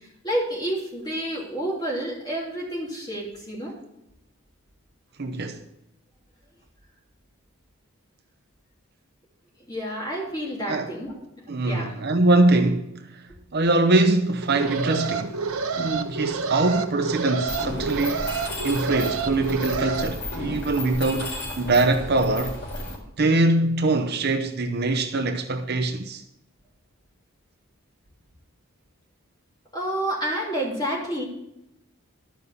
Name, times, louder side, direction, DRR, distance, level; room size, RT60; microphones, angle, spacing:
voice 1, 0.2-3.8 9.7-11.1 11.6-11.9 29.7-31.2, right 1 dB, 20° left, 3.1 m, -29 dB
voice 2, 5.2-5.6 10.7-10.9 11.5-15.4 15.8-18.3 18.6-22.6 23.2-26.2, right 2 dB, 50° right, 0.8 m, -23 dB
Alarm, 14.4-20.0, right 5 dB, 80° right, 1.0 m, -29 dB
Mechanisms, 17.5-22.9, left 1 dB, 55° left, 4.6 m, -33 dB
12.5 x 5.5 x 6.9 m
head